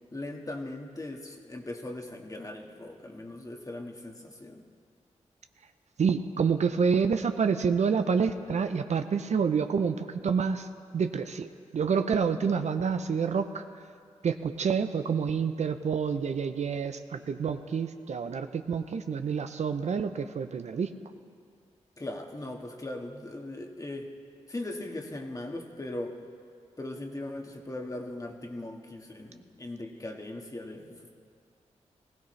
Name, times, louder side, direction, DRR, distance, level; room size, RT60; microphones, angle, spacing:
voice 1, 0.1-4.6 22.0-24.1 24.5-26.2 26.8-31.2, left 1 dB, 30° left, 2 dB, 1.6 m, -39 dB
voice 2, 6.0-10.7 10.9-13.6 14.2-20.9, right 6 dB, 65° right, 8 dB, 0.6 m, -28 dB
20.0 x 15.5 x 3.3 m, 2.2 s
cardioid pair, 55°, 13 cm